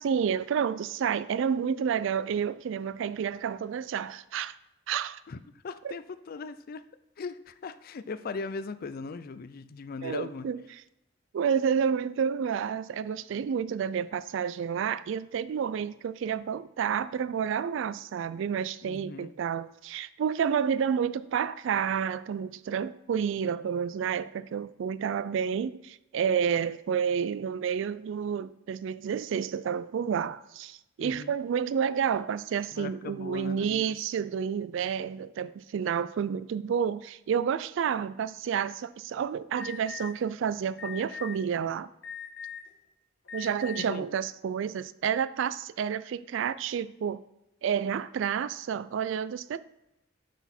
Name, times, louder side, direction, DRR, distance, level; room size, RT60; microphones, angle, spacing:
voice 1, 0.0-4.6 4.9-5.2 5.8-5.9 10.0-10.6 11.3-41.9 43.3-47.2 47.6-49.6, right 7 dB, 70° right, 0.3 m, -30 dB
voice 2, 5.3-6.8 7.2-10.5 18.8-19.3 31.0-31.3 32.7-33.8 43.8-44.1, left 4 dB, 50° left, 0.4 m, -39 dB
Alarm, 39.6-40.1 40.8-41.3 42.0-42.7 43.2-43.8, left 8 dB, 70° left, 1.5 m, -40 dB
8.1 x 6.0 x 4.3 m
head